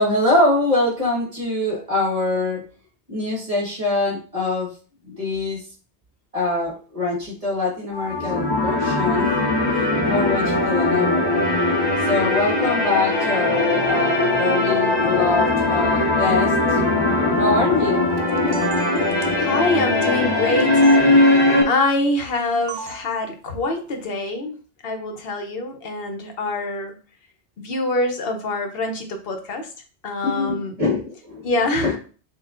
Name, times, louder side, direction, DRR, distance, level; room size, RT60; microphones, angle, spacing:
voice 1, 0.0-2.6 3.1-4.7 5.0-5.6 6.3-9.3 9.7-11.4 12.1-16.8 17.4-18.1 30.2-31.5 31.8-31.9, left 2 dB, 35° right, -3 dB, 1.3 m, -23 dB
sound 1, 7.9-21.6, left 2 dB, 25° left, 0.8 m, -20 dB
sound 2, 18.2-19.4 20.8-21.0 22.7-23.1, right 3 dB, 75° right, 0.8 m, -33 dB
voice 2, 19.3-24.6 24.8-26.9 27.6-29.7 30.0-30.8 31.4-32.0, left 2 dB, 60° left, 5 dB, 0.9 m, -25 dB
6.3 x 2.4 x 2.4 m, 0.38 s
omnidirectional pair, 1.2 m